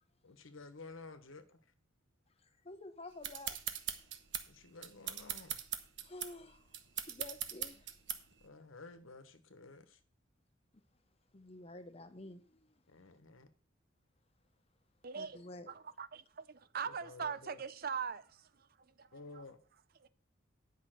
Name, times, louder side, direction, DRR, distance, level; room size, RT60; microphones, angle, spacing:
voice 1, 0.2-1.6 4.5-5.6 8.4-10.0 12.9-13.5 16.8-17.6 19.1-19.6, left 3 dB, 85° left, 1.3 m, -53 dB
voice 2, 2.4-3.6 6.0-6.8 7.1-7.9 11.3-12.7 15.1-15.7, left 2 dB, 30° left, 0.9 m, -50 dB
sound 1, 3.2-8.4, right 10 dB, 65° right, 1.0 m, -41 dB
voice 3, 15.0-19.4 20.0-20.1, right 6 dB, 45° right, 0.5 m, -42 dB
10.0 x 5.8 x 5.8 m
head